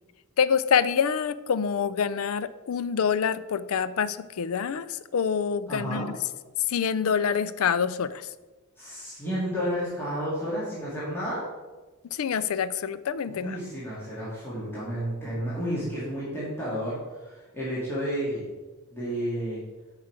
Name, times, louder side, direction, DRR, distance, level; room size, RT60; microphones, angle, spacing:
voice 1, 0.4-6.1 6.7-8.3 12.1-13.6, left 7 dB, 70° left, 16 dB, 0.4 m, -26 dB
voice 2, 5.7-6.1 8.8-11.4 13.3-18.5 18.9-19.6, equal, 10° left, -9 dB, 2.1 m, -31 dB
8.1 x 4.8 x 4.8 m, 1.2 s
head